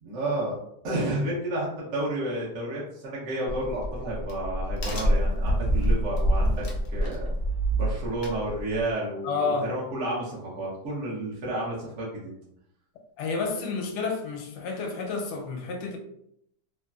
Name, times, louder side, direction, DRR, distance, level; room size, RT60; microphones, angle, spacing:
voice 1, 0.0-0.6 0.8-7.3 7.7-9.4 9.7-12.3, right 1 dB, 60° right, 1.1 m, -31 dB
Crack, 3.5-8.9, right 1 dB, 65° left, 0.6 m, -26 dB
voice 2, 9.2-9.7 13.2-16.0, left 4 dB, 85° left, 1.2 m, -30 dB
3.2 x 2.1 x 2.3 m
omnidirectional pair, 1.8 m